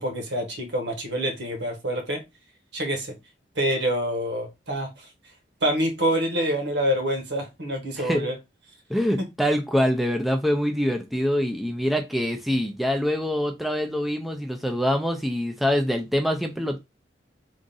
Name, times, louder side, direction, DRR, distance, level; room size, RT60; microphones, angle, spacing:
voice 1, 0.0-2.2 2.7-3.1 3.5-5.1 5.6-8.4 9.2-9.3, equal, 80° right, 1.2 m, -26 dB
voice 2, 8.0-8.3 8.9-16.8, equal, ahead, 0.4 m, -25 dB
3.6 x 2.5 x 3.9 m
head